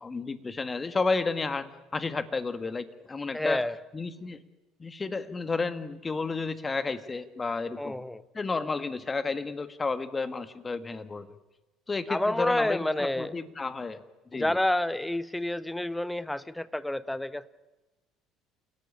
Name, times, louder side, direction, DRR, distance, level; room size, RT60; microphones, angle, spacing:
voice 1, 0.0-3.6 3.9-4.4 4.8-8.0 8.3-11.3 11.9-14.0 14.3-14.6, left 4 dB, 25° left, 11 dB, 1.7 m, -32 dB
voice 2, 3.3-3.7 7.8-8.2 12.1-13.4 14.3-17.5, left 1 dB, 5° left, 16 dB, 1.0 m, -29 dB
28.5 x 17.0 x 8.6 m, 1.1 s
hypercardioid pair, 60°, 0 cm